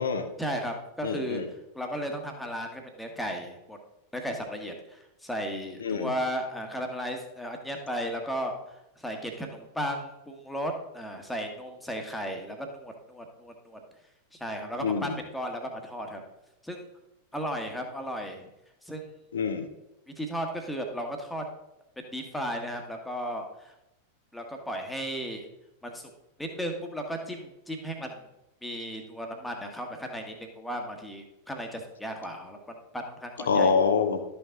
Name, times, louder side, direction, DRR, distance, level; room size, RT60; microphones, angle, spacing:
voice 1, 0.4-1.4 1.7-3.8 4.1-8.5 9.0-13.8 14.3-16.2 16.6-16.8 17.3-18.5 18.9-19.1 20.2-21.4 22.0-23.7 24.3-25.4 25.8-26.1 26.4-28.2 28.6-33.7, equal, 5° left, 3 dB, 1.4 m, -35 dB
voice 2, 1.0-1.4 5.8-6.1 14.8-15.1 19.3-19.7 33.5-34.2, left 5 dB, 65° left, 8 dB, 0.9 m, -25 dB
12.0 x 5.6 x 3.9 m, 0.90 s
figure-of-eight pair, 90°, 0 cm